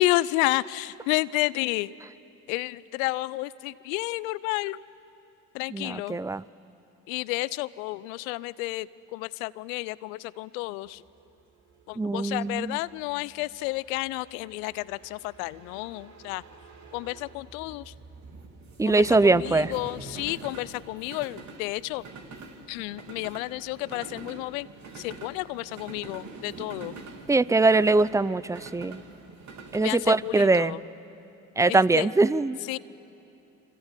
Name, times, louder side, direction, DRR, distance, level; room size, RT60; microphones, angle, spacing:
voice 1, 0.0-1.9 2.5-4.8 5.5-6.2 7.1-11.0 11.9-16.4 16.9-17.9 18.9-22.0 22.7-24.7 24.9-26.9 29.8-30.8 31.7-32.1 32.7-32.8, left 19 dB, 75° left, 20 dB, 0.7 m, -31 dB
voice 2, 5.7-6.4 12.0-12.8 18.8-19.7 27.3-29.0 29.7-30.8 31.6-32.6, right 3 dB, 10° right, 19 dB, 0.5 m, -22 dB
sound 1, 10.9-30.4, right 3 dB, 45° right, 3.3 m, -45 dB
27.5 x 25.5 x 8.3 m, 2.9 s
hypercardioid pair, 70°, 41 cm